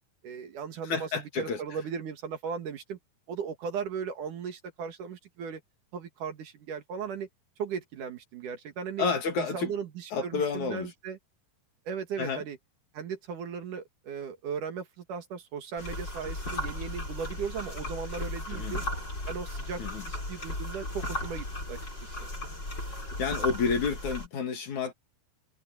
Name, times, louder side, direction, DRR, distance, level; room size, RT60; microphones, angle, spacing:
voice 1, 0.2-3.0 3.3-5.6 5.9-7.3 7.6-9.1 9.4-9.9 10.2-11.2 11.9-12.6 12.9-18.8 19.3-22.3, right 6 dB, 60° right, 3.2 m, -37 dB
voice 2, 0.8-1.6 9.0-9.7 10.1-10.9 12.2-12.4 18.5-18.8 19.8-20.0 23.2-24.9, left 5 dB, 55° left, 3.5 m, -30 dB
sound 1, 15.8-24.3, left 1 dB, 25° left, 6.9 m, -36 dB
omnidirectional pair, 4.2 m